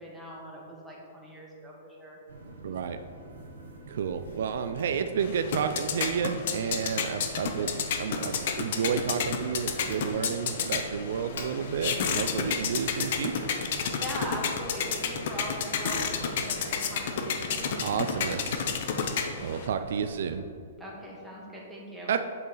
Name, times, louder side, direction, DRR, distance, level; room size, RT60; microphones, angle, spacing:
voice 1, 0.0-2.2 13.9-17.9 19.3-19.8 20.8-22.1, equal, 5° right, -5 dB, 1.2 m, -41 dB
sound 1, 2.3-20.4, right 2 dB, 85° right, 1.5 m, -45 dB
voice 2, 2.6-3.0 3.9-13.5 17.8-18.7 19.1-20.4 22.1-22.2, right 7 dB, 65° right, 8 dB, 0.3 m, -31 dB
Fire, 4.1-12.5, left 4 dB, 75° left, 1.0 m, -52 dB
sound 2, 5.2-19.7, left 6 dB, 55° left, 0.6 m, -31 dB
7.8 x 4.1 x 3.9 m, 2.5 s
hypercardioid pair, 155°, 0 cm